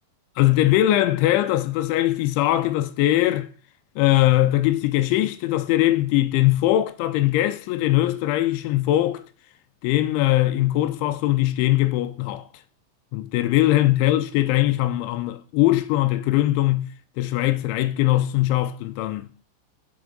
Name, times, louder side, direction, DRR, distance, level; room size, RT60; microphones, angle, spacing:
voice 1, 0.4-3.5 4.0-9.2 9.8-12.4 13.1-19.3, left 15 dB, 80° left, 2.9 m, -21 dB
7.2 x 7.2 x 5.2 m
omnidirectional pair, 5.6 m